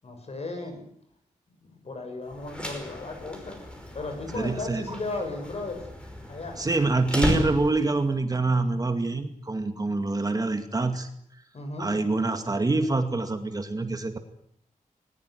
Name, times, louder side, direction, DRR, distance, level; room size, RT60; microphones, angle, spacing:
voice 1, 0.0-0.8 1.6-5.9 6.3-6.7 11.5-11.9, left 3 dB, 50° left, 5 dB, 7.5 m, -36 dB
sound 1, 2.3-8.1, left 1 dB, 10° left, 5.6 m, -33 dB
voice 2, 4.3-4.8 6.6-11.1 11.8-14.2, right 3 dB, 30° right, 7 dB, 2.2 m, -26 dB
20.5 x 20.0 x 9.9 m, 0.69 s
wide cardioid pair, 145°, 14 cm